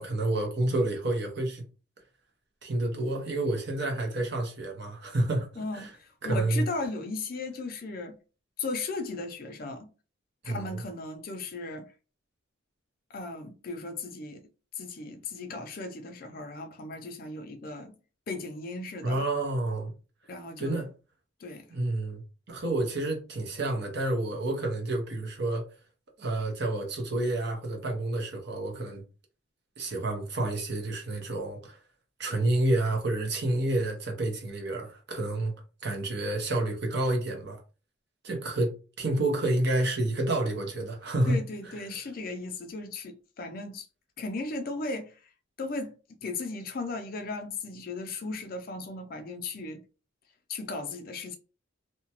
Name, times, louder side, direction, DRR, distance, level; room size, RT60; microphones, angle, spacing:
voice 1, 0.0-1.6 2.6-5.9 6.2-6.7 10.4-10.8 19.0-19.9 20.6-20.9 21.7-25.6 26.2-29.0 29.8-31.8 32.2-35.5 35.8-37.6 38.2-41.4 41.6-41.8, right 2 dB, 55° right, 0.8 m, -29 dB
voice 2, 5.6-8.2 8.6-9.9 10.4-11.8 13.1-14.4 14.8-17.9 18.3-19.2 20.3-20.8 21.4-21.6 41.3-43.9 44.2-45.1 45.6-45.9 46.2-49.8 50.5-51.4, left 3 dB, 45° left, 0.4 m, -36 dB
2.8 x 2.1 x 2.8 m
head